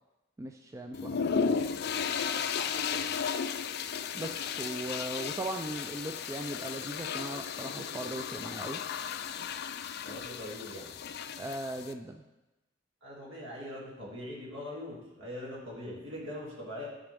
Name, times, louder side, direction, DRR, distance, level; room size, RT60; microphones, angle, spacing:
voice 1, 0.4-1.6 4.1-8.8 11.4-12.2, right 1 dB, 15° right, 4 dB, 0.3 m, -39 dB
sound 1, 0.9-11.9, left 6 dB, 55° left, 0.4 m, -34 dB
voice 2, 2.5-3.1 10.1-10.9 13.0-16.9, left 1 dB, 70° right, -4 dB, 2.5 m, -42 dB
12.5 x 5.1 x 3.5 m, 1.0 s
head